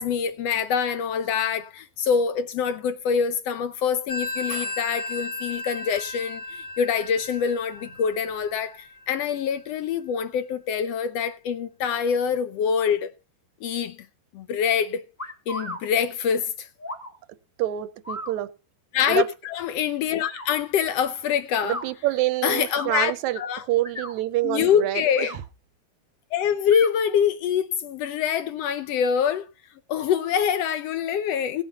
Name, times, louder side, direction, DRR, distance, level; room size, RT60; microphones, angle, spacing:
voice 1, 0.0-13.1 13.6-14.0 14.3-15.0 15.5-16.7 18.9-21.8 22.4-23.6 24.4-25.3 26.3-29.4 29.9-31.6, left 7 dB, 70° left, 1.6 m, -25 dB
Telephone, 4.1-9.4, left 2 dB, 45° left, 1.6 m, -35 dB
sound 1, 15.2-15.8 16.8-17.1 18.0-18.3 19.1-19.3 20.2-20.5 21.6-21.9 22.6-22.9 23.7-24.2 25.0-25.4 26.7-26.9, equal, 5° left, 1.5 m, -36 dB
voice 2, 17.6-18.5 19.1-19.3 21.6-23.4 23.7-25.3, right 15 dB, 75° right, 2.0 m, -26 dB
18.0 x 7.3 x 4.1 m
omnidirectional pair, 3.4 m